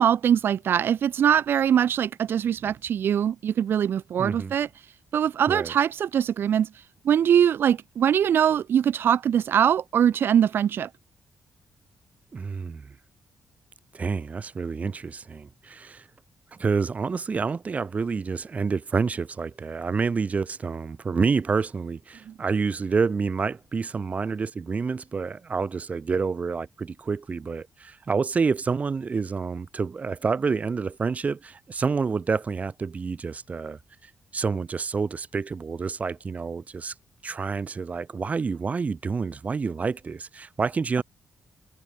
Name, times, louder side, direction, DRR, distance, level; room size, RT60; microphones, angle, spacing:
voice 1, 0.0-4.9 5.1-10.9 22.3-22.4, right 9 dB, 65° right, 1.0 m, -22 dB
voice 2, 4.2-4.5 5.5-5.7 12.3-12.9 13.9-16.0 16.6-33.8 34.3-36.9 37.2-41.0, right 5 dB, 35° right, 5.3 m, -28 dB
cardioid pair, 100°, 4 cm